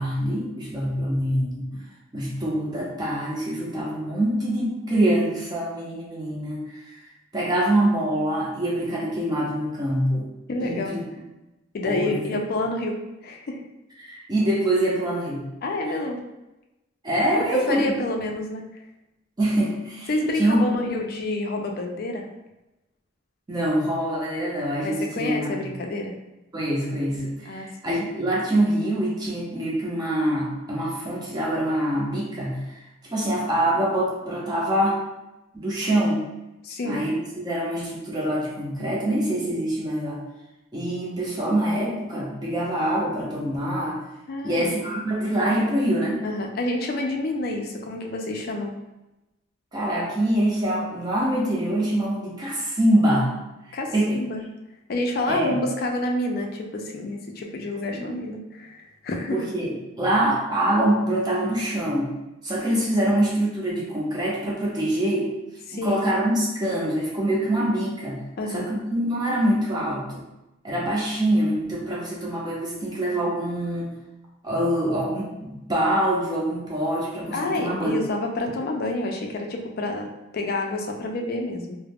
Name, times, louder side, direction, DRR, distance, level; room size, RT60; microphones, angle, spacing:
voice 1, 0.0-1.7 2.1-7.0 7.3-10.3 10.6-11.0 11.9-12.3 14.0-15.5 15.8-15.9 17.0-17.9 19.4-20.1 20.4-20.7 23.5-25.7 26.5-32.8 33.1-35.0 35.5-36.2 36.8-40.2 40.7-44.0 44.4-46.2 49.7-53.3 53.7-54.2 55.3-55.6 57.9-58.1 59.3-62.1 62.4-65.3 65.8-68.2 68.5-70.2 70.6-73.9 74.4-78.0, right 1 dB, 20° right, -5 dB, 0.5 m, -25 dB
voice 2, 10.5-11.0 11.7-13.0 13.2-13.6 15.6-16.2 17.3-18.6 20.1-22.3 24.8-26.1 27.5-27.7 36.6-37.0 44.3-44.7 46.2-48.7 53.7-54.4 54.9-59.4 65.7-66.1 68.4-68.7 77.3-81.8, left 2 dB, 50° left, 2 dB, 0.4 m, -28 dB
2.3 x 2.0 x 3.4 m, 0.97 s
head